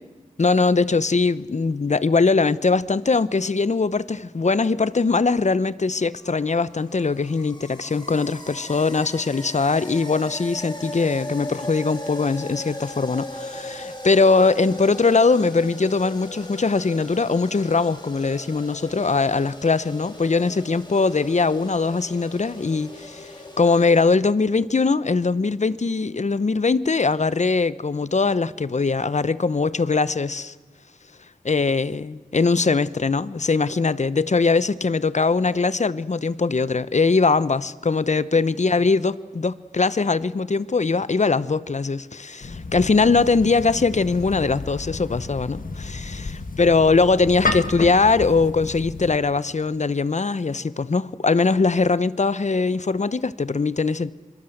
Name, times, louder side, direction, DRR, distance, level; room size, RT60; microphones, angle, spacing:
voice 1, 0.4-30.5 31.4-46.3 46.6-54.1, left 4 dB, 55° left, 0.8 m, -21 dB
sound 1, 6.1-24.1, left 1 dB, 35° left, 6.6 m, -38 dB
sound 2, 42.4-49.2, left 3 dB, 70° left, 1.7 m, -31 dB
25.5 x 22.5 x 7.9 m
wide cardioid pair, 50°, 15 cm